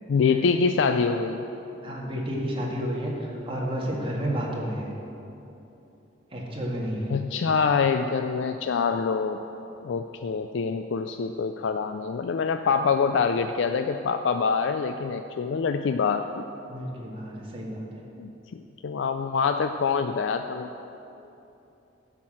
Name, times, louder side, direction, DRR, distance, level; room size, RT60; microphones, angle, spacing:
voice 1, 0.1-1.5 7.1-9.4 9.8-16.4 18.2-20.7, left 5 dB, 70° left, 7 dB, 0.4 m, -25 dB
voice 2, 1.8-4.9 6.3-7.1 16.7-18.1, equal, 30° right, -3 dB, 1.9 m, -31 dB
12.0 x 5.9 x 7.4 m, 2.9 s
head